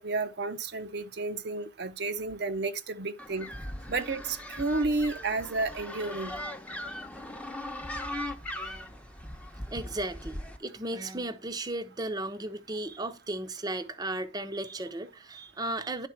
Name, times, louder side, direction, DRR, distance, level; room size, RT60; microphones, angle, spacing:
voice 1, 0.0-3.5 3.9-6.4, right 3 dB, 60° right, 0.7 m, -31 dB
sound 1, 3.2-10.6, left 1 dB, 5° left, 0.9 m, -39 dB
voice 2, 8.6-8.9 9.7-16.1, right 1 dB, 20° right, 0.7 m, -35 dB
11.0 x 4.1 x 5.7 m
head